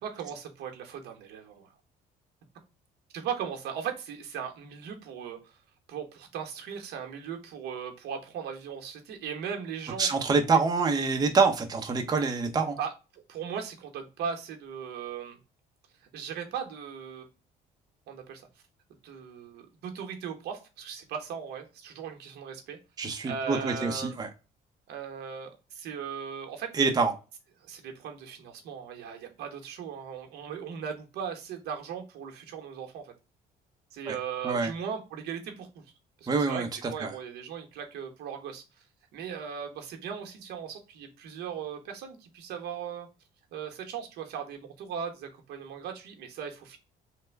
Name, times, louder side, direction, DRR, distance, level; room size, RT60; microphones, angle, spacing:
voice 1, 0.0-1.7 3.1-5.6 5.9-10.1 12.8-15.4 16.1-17.3 18.1-18.4 19.0-22.8 23.2-24.2 24.9-26.7 27.6-33.1 33.9-35.8 36.2-38.6 39.1-43.1 43.5-46.8, right 7 dB, 75° right, 0.9 m, -38 dB
voice 2, 10.0-12.8 23.0-24.3 26.7-27.1 34.1-34.2 34.4-34.7 36.3-37.1, right 4 dB, 25° right, 0.6 m, -26 dB
3.3 x 2.1 x 3.2 m
cardioid pair, 110°, 17 cm